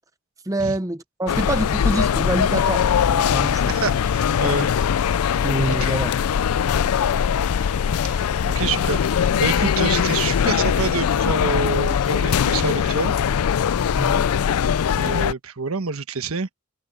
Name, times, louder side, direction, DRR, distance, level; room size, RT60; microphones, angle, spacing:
voice 1, 0.5-3.7 5.4-6.1 14.0-14.3, right 1 dB, 15° right, 0.6 m, -26 dB
sound 1, 1.3-15.3, left 8 dB, 85° left, 0.4 m, -21 dB
voice 2, 3.7-4.7 5.7-6.0 8.0-9.0 9.4-13.1 14.9-16.5, right 4 dB, 75° right, 1.2 m, -27 dB
Bowed string instrument, 5.3-12.3, left 6 dB, 30° left, 0.7 m, -44 dB
head